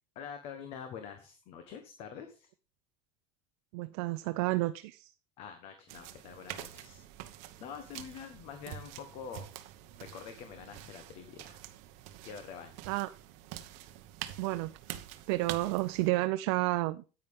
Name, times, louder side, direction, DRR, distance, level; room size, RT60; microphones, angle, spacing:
voice 1, 0.1-2.5 5.4-7.0 7.6-9.5 10.0-11.6 12.2-13.0, left 7 dB, 45° left, 1.3 m, -46 dB
voice 2, 3.7-5.1 12.9-13.1 14.4-14.7 15.3-17.0, right 19 dB, 80° right, 0.6 m, -30 dB
sound 1, 5.9-16.1, right 13 dB, 60° right, 1.1 m, -46 dB
9.8 x 9.2 x 3.7 m
cardioid pair, 175°, 14 cm